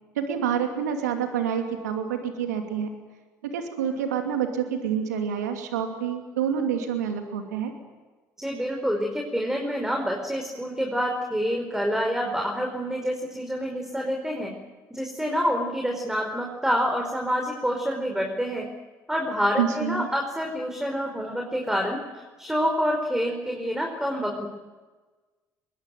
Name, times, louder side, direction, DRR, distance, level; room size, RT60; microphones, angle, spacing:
voice 1, 0.2-2.9 3.4-7.7 19.6-20.1, right 8 dB, 90° right, 4 dB, 2.6 m, -27 dB
voice 2, 8.4-14.5 14.9-18.7 19.1-22.0 22.4-24.5, equal, 5° right, 2 dB, 5.0 m, -27 dB
24.0 x 22.0 x 9.2 m, 1.3 s
hypercardioid pair, 55°, 9 cm